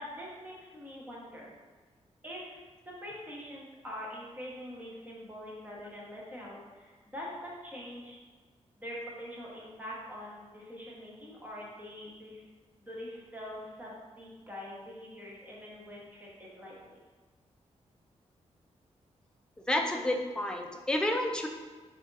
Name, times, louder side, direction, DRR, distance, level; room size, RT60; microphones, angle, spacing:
voice 1, 0.0-1.5 2.2-8.2 8.8-12.4 12.8-17.0, equal, 15° right, -5 dB, 1.1 m, -44 dB
voice 2, 19.7-21.5, left 1 dB, 5° left, 2 dB, 0.4 m, -30 dB
3.6 x 3.4 x 3.9 m, 1.4 s
wide cardioid pair, 155°, 12 cm